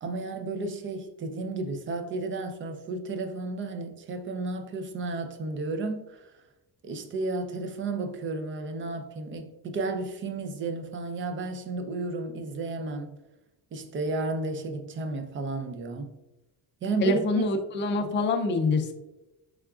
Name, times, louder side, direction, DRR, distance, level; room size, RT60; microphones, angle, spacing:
voice 1, 0.0-6.4 6.8-13.2 13.7-16.2 16.8-17.2, right 3 dB, 30° right, 0.5 m, -33 dB
voice 2, 17.0-18.9, left 2 dB, 30° left, 0.4 m, -25 dB
4.7 x 3.5 x 2.3 m
cardioid pair, 135°, 38 cm